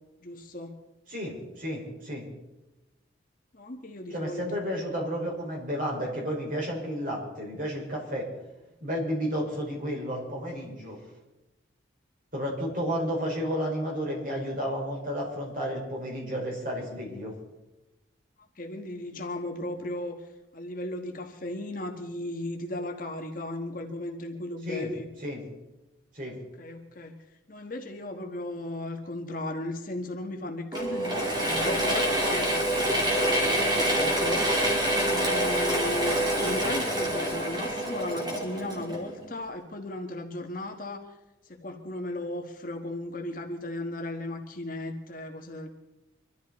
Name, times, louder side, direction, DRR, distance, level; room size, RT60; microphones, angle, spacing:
voice 1, 0.2-0.8 3.5-4.5 4.9-5.0 18.6-25.1 26.3-27.1 27.5-34.5 34.9-41.0 41.4-45.7, left 1 dB, 45° left, 4 dB, 1.4 m, -36 dB
voice 2, 1.1-2.2 4.1-8.3 8.8-11.0 12.3-17.3 24.6-24.9 25.2-25.4 26.1-26.4, equal, 45° right, -2 dB, 5.4 m, -32 dB
Mechanisms / Drill, 30.7-39.3, right 1 dB, 20° right, 3.1 m, -26 dB
24.5 x 13.5 x 4.2 m, 1.0 s
head